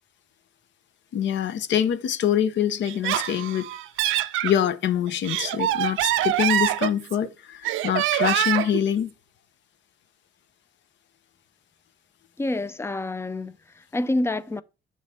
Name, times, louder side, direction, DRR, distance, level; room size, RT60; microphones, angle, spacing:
voice 1, 1.1-3.7 4.4-9.1, left 9 dB, 65° left, 0.6 m, -25 dB
Laughter, 2.8-4.5 5.1-7.3 7.6-8.8, right 13 dB, 85° right, 0.4 m, -25 dB
voice 2, 12.4-14.6, left 2 dB, 15° left, 0.4 m, -28 dB
6.9 x 3.1 x 5.3 m
cardioid pair, 90°, 20 cm